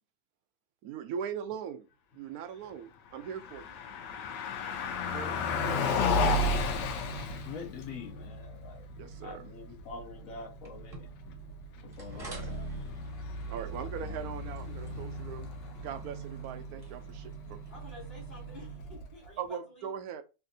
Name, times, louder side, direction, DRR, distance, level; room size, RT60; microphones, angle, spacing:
voice 1, 0.8-1.9 2.1-3.7 5.0-5.5 9.0-9.5 12.1-12.5 13.5-15.5 15.8-17.6 19.4-20.2, right 8 dB, 70° right, 0.9 m, -40 dB
Car passing by, 3.1-19.3, left 2 dB, 90° left, 1.3 m, -35 dB
voice 2, 7.3-8.8 9.2-11.1 11.8-12.7, left 5 dB, 65° left, 1.0 m, -45 dB
sound 1, 10.6-18.5, right 2 dB, 25° right, 0.8 m, -53 dB
voice 3, 17.7-20.0, left 2 dB, 25° left, 1.0 m, -50 dB
3.3 x 2.7 x 2.6 m
omnidirectional pair, 1.8 m